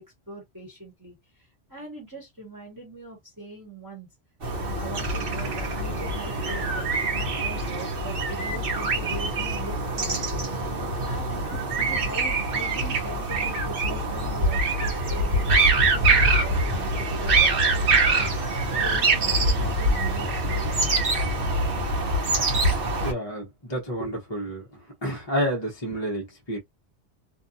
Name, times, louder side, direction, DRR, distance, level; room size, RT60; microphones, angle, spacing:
voice 1, 0.0-4.1 4.6-10.4 11.0-18.5 18.8-20.8, right 1 dB, 15° right, 1.2 m, -41 dB
sound 1, 4.4-23.1, right 2 dB, 55° right, 1.0 m, -24 dB
voice 2, 23.0-24.6 25.0-26.6, equal, 25° left, 0.8 m, -29 dB
2.6 x 2.3 x 2.6 m
omnidirectional pair, 1.2 m